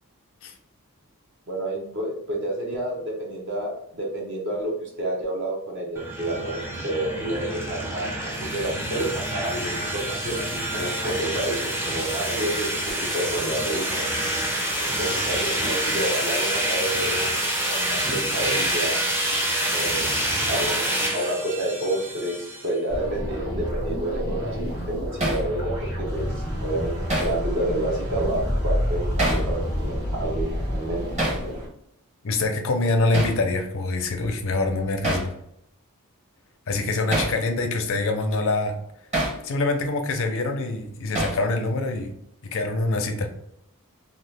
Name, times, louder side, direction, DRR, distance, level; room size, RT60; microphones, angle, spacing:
voice 1, 1.5-14.1 14.8-17.3 17.7-19.0 19.7-20.2 20.5-24.6 24.9-26.3 26.6-31.0, right 1 dB, 55° right, -2 dB, 0.8 m, -29 dB
sound 1, 6.0-22.7, right 1 dB, 10° right, 0.5 m, -27 dB
sound 2, 22.9-31.7, equal, 75° right, 1.3 m, -28 dB
Hammer, 25.2-25.5 27.1-27.4 29.2-29.5 31.2-31.4 33.1-33.4 35.0-35.3 37.1-37.4 39.1-39.4 41.1-41.5, right 1 dB, 30° right, 0.9 m, -25 dB
voice 2, 32.2-35.3 36.7-38.8 39.4-42.1 42.4-43.3, left 2 dB, 60° left, 5 dB, 0.5 m, -25 dB
2.8 x 2.3 x 3.3 m, 0.76 s
head